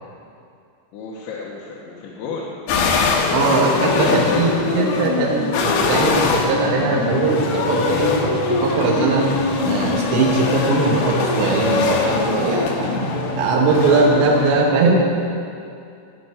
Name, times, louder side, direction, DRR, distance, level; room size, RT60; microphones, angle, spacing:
voice 1, 0.9-2.5 3.0-3.5, left 4 dB, 90° left, -4 dB, 3.3 m, -33 dB
sound 1, 2.7-14.5, left 4 dB, 70° left, 2.1 m, -22 dB
voice 2, 3.3-9.2 9.6-12.9 13.4-15.0, right 3 dB, 75° right, -2 dB, 3.4 m, -20 dB
Bowed string instrument, 7.0-12.1, equal, 35° left, 1.6 m, -35 dB
13.5 x 5.5 x 9.1 m, 2.5 s
omnidirectional pair, 5.2 m